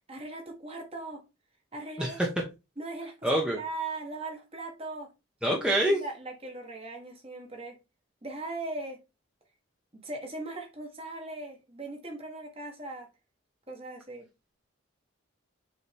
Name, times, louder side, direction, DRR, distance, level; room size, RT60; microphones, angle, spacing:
voice 1, 0.1-1.2 1.7-2.2 2.8-5.1 5.9-7.8 8.2-9.0 9.9-13.1 13.7-14.3, right 2 dB, 30° right, 1.6 m, -39 dB
voice 2, 3.2-3.6 5.4-6.0, right 1 dB, 5° right, 1.1 m, -25 dB
7.0 x 4.0 x 3.4 m
head